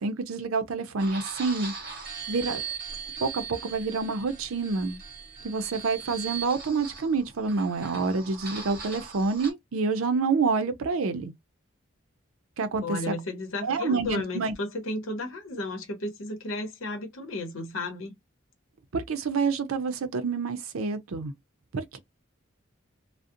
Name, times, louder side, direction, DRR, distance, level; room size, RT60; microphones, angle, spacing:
voice 1, 0.0-1.7 2.3-2.6 3.2-5.0 5.4-11.3 12.6-13.1 13.6-14.5 18.9-21.3 21.7-22.0, right 4 dB, 90° right, 0.5 m, -28 dB
sound 1, 1.0-9.5, right 6 dB, 45° right, 0.8 m, -39 dB
voice 2, 12.8-18.1, left 2 dB, 80° left, 0.8 m, -33 dB
2.4 x 2.0 x 2.6 m
head